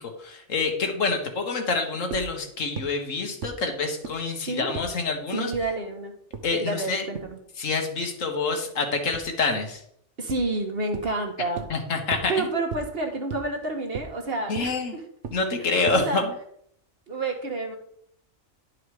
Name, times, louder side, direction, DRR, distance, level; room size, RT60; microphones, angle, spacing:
voice 1, 0.0-5.5 6.4-7.1 7.6-9.8 11.7-12.3 14.5-14.9 15.3-16.3, left 4 dB, 90° left, 4 dB, 1.7 m, -27 dB
sound 1, 2.1-2.2 2.8-2.9 3.4-3.5 4.0-4.1 4.7-4.8 5.5-5.6 6.3-6.4 7.1-7.2 9.1-9.2 10.3-10.4 10.9-11.0 11.6-11.7 12.1-12.2 12.7-12.8 13.3-13.4 13.9-14.0 14.6-14.7 15.2-15.3 15.9-16.0, right 6 dB, 70° right, 1.2 m, -33 dB
voice 2, 4.5-4.8 5.3-6.1 6.6-7.4 10.2-11.7 12.3-15.0 15.9-16.2 17.1-17.8, right 2 dB, 50° right, 3 dB, 1.5 m, -29 dB
11.0 x 4.8 x 4.8 m, 0.68 s
omnidirectional pair, 1.3 m